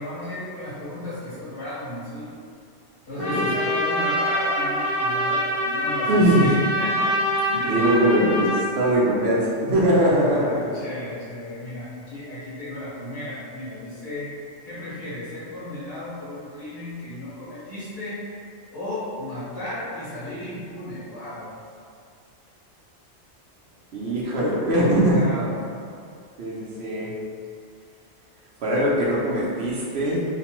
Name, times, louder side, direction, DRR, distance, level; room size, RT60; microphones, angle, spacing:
voice 1, 0.0-2.4 3.0-7.1 7.4-7.8 10.2-14.3 14.6-18.3 18.7-21.5 24.0-25.5, left 1 dB, 60° left, -13 dB, 1.6 m, -34 dB
Trumpet, 3.2-8.6, equal, 75° left, 1.3 m, -25 dB
voice 2, 6.1-6.5 7.6-10.8 23.9-25.3 26.4-27.2 28.6-30.3, right 1 dB, 65° right, -5 dB, 0.8 m, -21 dB
3.1 x 2.2 x 2.9 m, 2.3 s
omnidirectional pair, 1.2 m